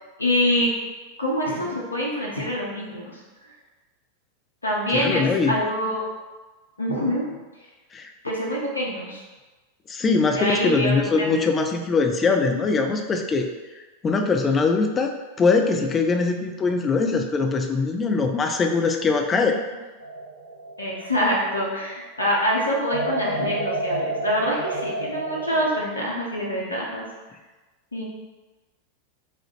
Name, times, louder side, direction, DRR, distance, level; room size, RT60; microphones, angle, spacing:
voice 1, 0.2-0.7 1.2-3.2 4.6-6.1 6.8-7.3 8.2-9.2 10.3-11.4 20.8-27.0 27.9-28.0, equal, 80° left, -4 dB, 0.7 m, -25 dB
voice 2, 4.9-5.6 7.9-8.1 9.9-13.5 14.0-19.6, left 4 dB, 20° left, 4 dB, 0.3 m, -22 dB
sound 1, 20.0-21.8 22.9-25.7, right 1 dB, 75° right, 0.4 m, -29 dB
3.0 x 2.3 x 3.2 m, 1.2 s
figure-of-eight pair, 90°, 0 cm